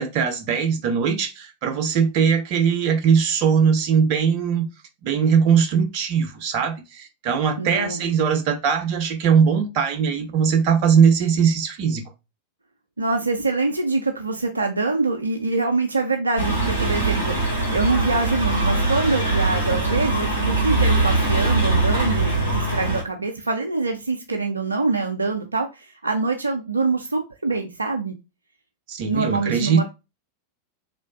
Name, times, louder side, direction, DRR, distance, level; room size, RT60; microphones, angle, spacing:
voice 1, 0.0-4.6 5.0-12.0 28.9-29.8, right 6 dB, 45° right, 0.6 m, -20 dB
voice 2, 7.6-8.0 13.0-28.2 29.0-29.8, right 3 dB, 80° right, 0.4 m, -25 dB
sound 1, 16.4-23.0, right 2 dB, 85° left, 1.3 m, -22 dB
3.1 x 2.5 x 2.3 m
figure-of-eight pair, 90°, 0 cm